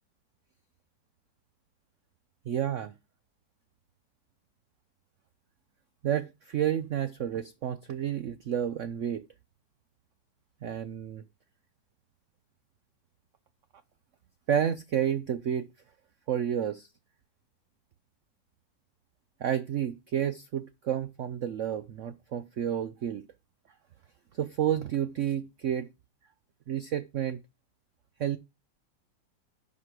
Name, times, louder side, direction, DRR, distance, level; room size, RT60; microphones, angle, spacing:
voice 1, 2.5-2.9 6.0-9.3 10.6-11.2 14.5-15.7 16.3-16.9 19.4-23.3 24.3-25.9 26.7-27.4 28.2-28.4, right 9 dB, 65° right, 0.8 m, -30 dB
10.5 x 6.0 x 4.8 m
omnidirectional pair, 2.0 m